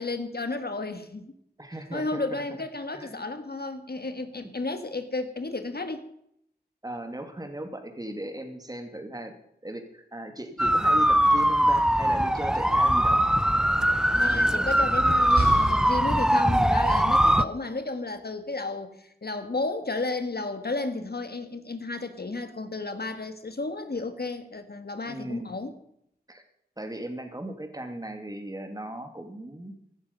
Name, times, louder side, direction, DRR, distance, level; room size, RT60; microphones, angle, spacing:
voice 1, 0.0-1.3 1.9-6.1 14.2-25.7, left 3 dB, 70° left, 8 dB, 1.5 m, -33 dB
voice 2, 1.6-2.2 2.9-3.2 6.8-9.3 9.6-13.3 25.1-25.6 26.3-26.4 26.8-29.7, right 1 dB, 20° right, 5 dB, 2.3 m, -37 dB
sound 1, 10.6-17.4, equal, 5° right, 0.5 m, -21 dB
Slam, 11.9-16.6, right 2 dB, 70° right, 4.2 m, -36 dB
15.5 x 12.5 x 5.3 m, 0.73 s
wide cardioid pair, 55°, 17 cm